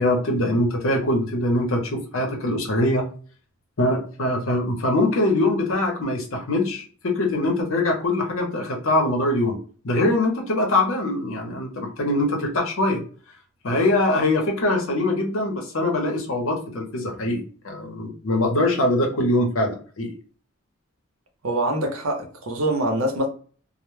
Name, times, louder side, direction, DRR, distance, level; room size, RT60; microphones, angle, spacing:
voice 1, 0.0-3.1 3.8-9.6 9.8-13.0 13.6-20.1, left 1 dB, 80° left, 0.7 m, -23 dB
voice 2, 21.4-23.3, right 1 dB, 80° right, 0.7 m, -24 dB
2.1 x 2.1 x 3.1 m
head